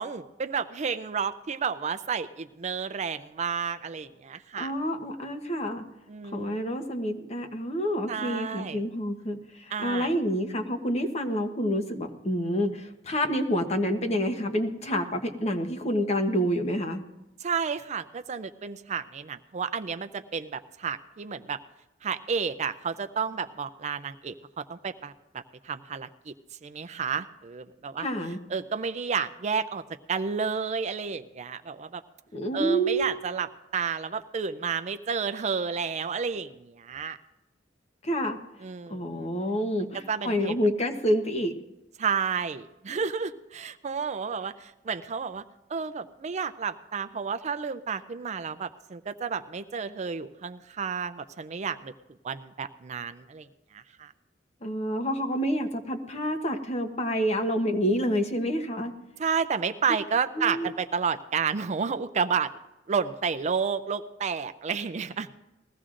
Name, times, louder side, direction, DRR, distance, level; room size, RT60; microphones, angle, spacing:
voice 1, 0.0-4.7 6.1-6.6 8.1-8.8 9.7-10.1 17.4-21.6 22.0-25.1 25.6-26.3 26.6-28.1 28.5-29.8 30.1-32.0 32.5-37.2 38.6-39.3 40.1-40.6 42.0-45.4 45.7-51.9 52.2-53.5 53.7-54.1 59.2-62.5 62.9-65.3, right 6 dB, 40° right, 11 dB, 0.4 m, -31 dB
voice 2, 4.6-5.9 6.3-17.0 28.0-28.4 32.3-33.2 38.0-38.4 38.9-41.6 54.6-58.9 60.4-60.7, equal, 35° left, 5 dB, 1.0 m, -28 dB
20.5 x 15.5 x 2.5 m, 0.95 s
head